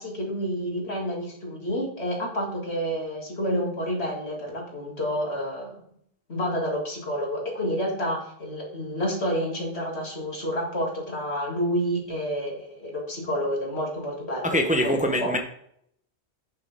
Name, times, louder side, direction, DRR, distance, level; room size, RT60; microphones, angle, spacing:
voice 1, 0.0-5.8 6.3-15.3, equal, 70° left, -1 dB, 2.9 m, -29 dB
voice 2, 14.4-15.4, equal, 5° right, 4 dB, 0.9 m, -23 dB
9.1 x 7.6 x 3.7 m, 0.69 s
omnidirectional pair, 1.1 m